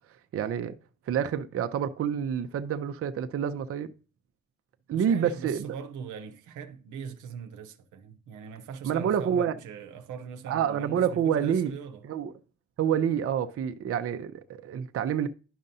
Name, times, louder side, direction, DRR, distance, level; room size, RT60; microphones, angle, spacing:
voice 1, 0.3-0.8 1.1-3.9 4.9-5.7 8.8-9.6 10.5-11.7 12.0-12.3 12.8-15.3, right 8 dB, 50° right, 0.6 m, -28 dB
voice 2, 4.9-12.0, right 6 dB, 85° right, 0.8 m, -41 dB
11.0 x 5.3 x 2.7 m
cardioid pair, 90°, 30 cm